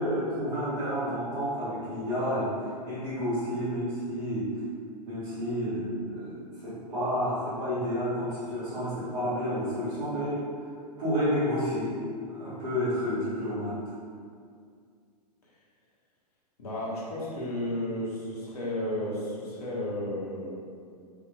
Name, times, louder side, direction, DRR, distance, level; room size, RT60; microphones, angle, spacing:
voice 1, 0.0-4.5 5.1-6.4 6.6-10.5 11.0-12.0 12.3-13.8, equal, 65° right, -12 dB, 1.4 m, -30 dB
voice 2, 16.6-20.5, left 1 dB, 65° left, -6 dB, 1.4 m, -33 dB
5.4 x 3.2 x 2.4 m, 2.2 s
figure-of-eight pair, 100°, 21 cm